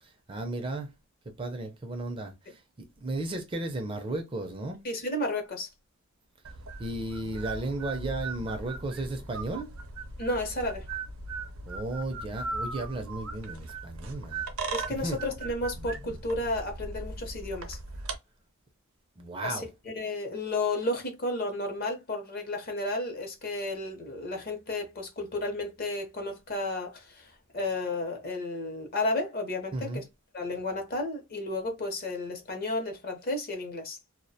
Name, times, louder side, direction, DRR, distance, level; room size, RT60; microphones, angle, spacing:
voice 1, 0.0-0.9 1.4-4.8 6.8-9.7 11.7-14.4 14.9-15.2 19.2-19.7 29.7-30.0, right 2 dB, 25° right, 0.4 m, -34 dB
voice 2, 4.8-5.7 10.2-10.9 14.7-17.8 19.4-19.6 19.9-30.0 30.3-34.0, left 2 dB, 45° left, 0.6 m, -32 dB
sound 1, 6.4-18.2, right 3 dB, 75° right, 0.6 m, -38 dB
2.2 x 2.1 x 2.6 m
head